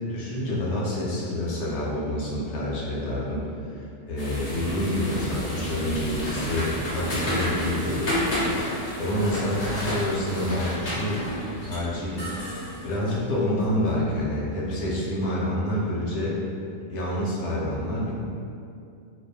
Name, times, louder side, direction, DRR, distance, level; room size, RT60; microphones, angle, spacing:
voice 1, 0.1-8.2 9.0-11.2 11.6-12.3 12.6-16.4 16.9-18.2, left 1 dB, 70° left, -5 dB, 0.8 m, -28 dB
sound 1, 4.2-13.7, equal, 45° left, 0.5 m, -31 dB
2.3 x 2.0 x 2.6 m, 2.5 s
omnidirectional pair, 1.4 m